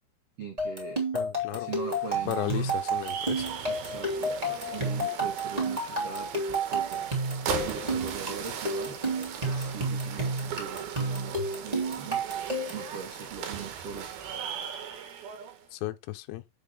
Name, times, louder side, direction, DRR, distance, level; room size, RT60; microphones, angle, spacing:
voice 1, 0.4-1.0 1.4-2.8 3.6-4.4 4.7-9.0 9.4-12.2 12.7-14.1, right 5 dB, 90° right, 1.3 m, -41 dB
sound 1, 0.6-12.9, right 2 dB, 25° right, 0.8 m, -31 dB
voice 2, 1.1-1.7 2.3-3.5 15.7-16.4, left 15 dB, 75° left, 2.8 m, -34 dB
sound 2, 1.6-15.7, right 8 dB, 65° right, 2.7 m, -39 dB
9.2 x 6.9 x 3.6 m
omnidirectional pair, 5.8 m